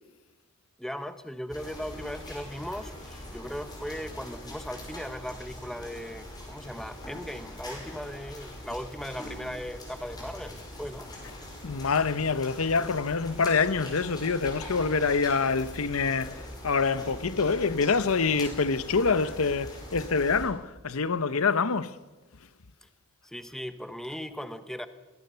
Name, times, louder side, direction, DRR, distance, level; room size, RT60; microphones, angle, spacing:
voice 1, 0.8-11.1 22.8-22.9 23.2-24.9, equal, ahead, 1.0 m, -38 dB
sound 1, 1.5-20.5, left 1 dB, 20° left, 5.2 m, -42 dB
voice 2, 11.6-22.0, left 4 dB, 90° left, 0.8 m, -26 dB
22.5 x 18.5 x 6.8 m
head